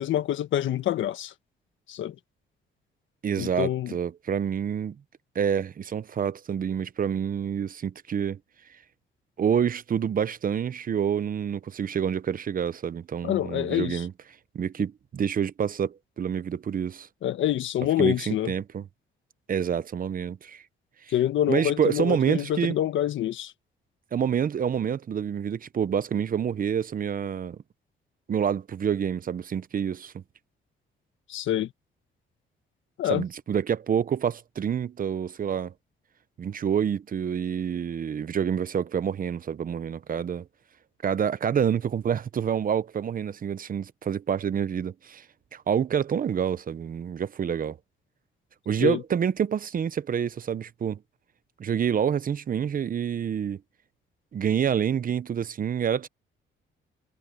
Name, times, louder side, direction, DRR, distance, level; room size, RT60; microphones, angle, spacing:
voice 1, 0.0-1.3 1.9-2.1 3.4-3.9 13.2-14.0 17.2-18.5 21.1-23.5 31.3-31.7 33.0-33.2 48.8-49.0, left 12 dB, 75° left, 1.5 m, -26 dB
voice 2, 3.2-5.0 5.3-8.4 9.4-14.1 14.5-17.1 18.0-18.8 19.5-20.6 21.0-21.1 21.5-22.8 24.1-27.6 28.3-30.1 33.1-35.7 36.4-40.5 41.0-45.2 45.5-47.8 48.7-51.0 51.6-53.6 54.3-56.1, right 8 dB, 45° right, 0.8 m, -27 dB
cardioid pair, 90°, 20 cm